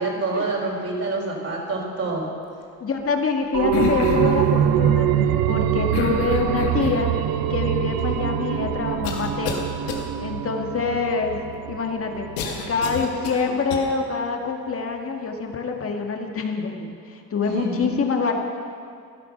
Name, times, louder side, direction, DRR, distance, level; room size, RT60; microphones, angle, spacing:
voice 1, 0.0-2.3 17.4-17.9, right 3 dB, 40° right, -3 dB, 4.5 m, -27 dB
voice 2, 2.8-5.1 5.5-7.1 7.5-9.7 10.2-11.4 11.7-12.3 12.7-18.4, left 4 dB, 35° left, 3 dB, 2.1 m, -25 dB
sound 1, 3.5-12.9 13.3-13.4, right 10 dB, 65° right, 0.8 m, -24 dB
sound 2, 3.7-4.4 5.9-7.1 7.9-8.0 9.0-9.6 9.9-10.0 12.4-13.8, left 6 dB, 90° left, 1.8 m, -28 dB
14.5 x 12.0 x 5.9 m, 2.3 s
supercardioid pair, 80°, 37 cm